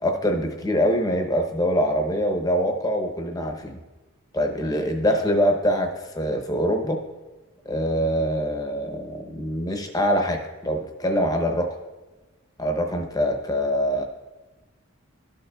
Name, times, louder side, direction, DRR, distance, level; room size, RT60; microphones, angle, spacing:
voice 1, 0.0-3.8 4.3-7.0 7.6-11.8 12.6-14.0, equal, 15° left, 4 dB, 0.7 m, -24 dB
13.0 x 6.7 x 2.3 m, 1.2 s
head